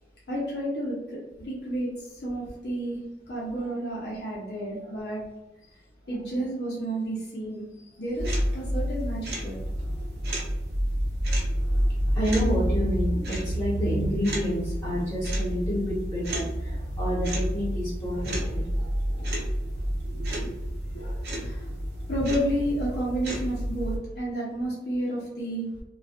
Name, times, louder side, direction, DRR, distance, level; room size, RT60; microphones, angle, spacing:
voice 1, 0.3-3.0 3.3-5.2 6.1-9.6 18.1-19.6 20.0-20.6 20.9-21.7 22.1-25.7, right 1 dB, 60° left, -6 dB, 0.7 m, -32 dB
sound 1, 8.2-24.0, equal, 60° right, 0.7 m, -29 dB
voice 2, 12.1-18.7, equal, 15° left, -9 dB, 1.3 m, -29 dB
2.5 x 2.3 x 2.4 m, 0.95 s
head